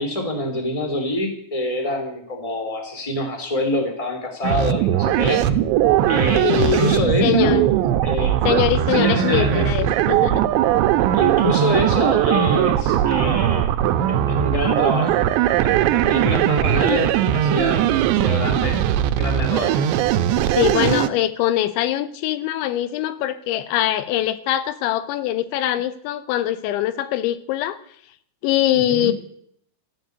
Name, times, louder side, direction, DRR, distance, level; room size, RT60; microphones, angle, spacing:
voice 1, 0.0-5.4 6.1-7.6 8.0-8.4 8.9-9.7 11.1-13.7 14.1-18.8 19.2-19.9 28.7-29.1, left 1 dB, 10° left, 4 dB, 2.5 m, -26 dB
sound 1, 4.4-21.1, right 11 dB, 80° right, 3.0 m, -19 dB
voice 2, 6.4-7.8 8.4-10.5 20.6-27.8 28.4-29.1, left 13 dB, 90° left, 13 dB, 3.2 m, -22 dB
14.0 x 11.5 x 8.1 m, 0.68 s
omnidirectional pair, 5.2 m